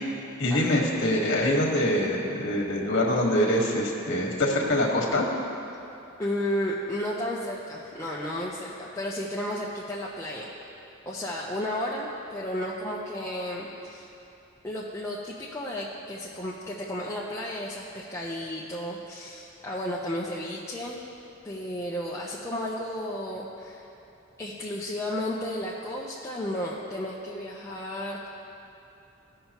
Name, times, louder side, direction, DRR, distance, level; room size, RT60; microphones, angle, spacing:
voice 1, 0.4-5.3, left 1 dB, 55° left, -1 dB, 1.4 m, -24 dB
voice 2, 6.2-10.5 11.1-14.1 14.6-21.0 21.4-23.8 24.4-28.3, left 1 dB, 15° left, -6 dB, 0.6 m, -33 dB
15.5 x 5.6 x 2.9 m, 2.8 s
head